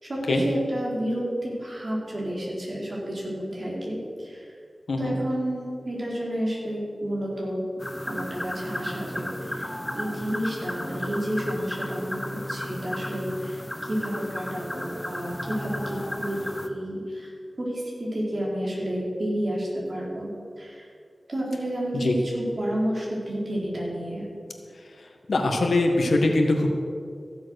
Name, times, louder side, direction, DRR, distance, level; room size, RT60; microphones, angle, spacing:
voice 1, 0.0-4.5 5.0-7.6 8.0-17.3 17.6-20.9 21.3-24.3, equal, 55° right, -4 dB, 4.1 m, -30 dB
sound 1, 7.8-16.7, left 1 dB, 15° left, 1.1 m, -34 dB
voice 2, 25.3-26.7, left 2 dB, 90° left, 3 dB, 1.6 m, -22 dB
15.0 x 7.5 x 6.5 m, 2.3 s
wide cardioid pair, 55°, 0 cm